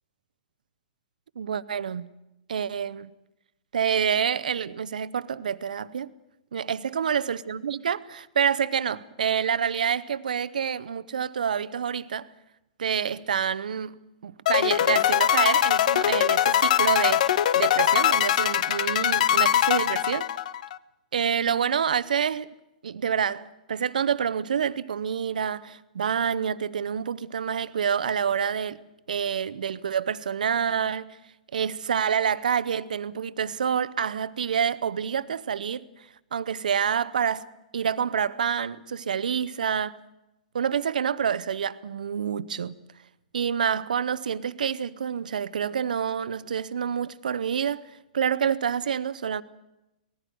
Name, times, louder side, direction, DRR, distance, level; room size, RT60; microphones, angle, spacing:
voice 1, 1.4-2.1 2.5-3.1 3.7-6.1 6.5-12.3 12.8-14.0 14.2-17.3 17.5-20.3 21.1-22.5 22.8-28.8 29.1-31.2 31.5-35.8 36.3-37.5 37.7-40.0 40.5-42.8 43.3-49.4, right 7 dB, 80° right, 0.7 m, -27 dB
sound 1, 14.5-20.8, left 11 dB, 60° left, 0.6 m, -22 dB
19.5 x 15.0 x 9.2 m
hypercardioid pair, 120°, 4 cm